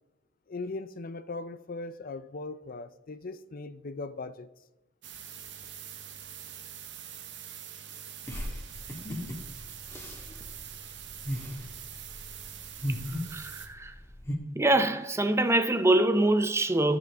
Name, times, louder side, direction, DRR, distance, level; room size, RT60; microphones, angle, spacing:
voice 1, 0.5-4.5, left 3 dB, 50° left, 0.5 m, -39 dB
sound 1, 5.0-13.7, right 8 dB, 65° right, 1.0 m, -44 dB
sound 2, 8.3-14.4, equal, 15° left, 1.8 m, -37 dB
voice 2, 13.3-13.9 14.6-17.0, right 1 dB, 15° right, 0.5 m, -24 dB
13.5 x 7.2 x 3.5 m
head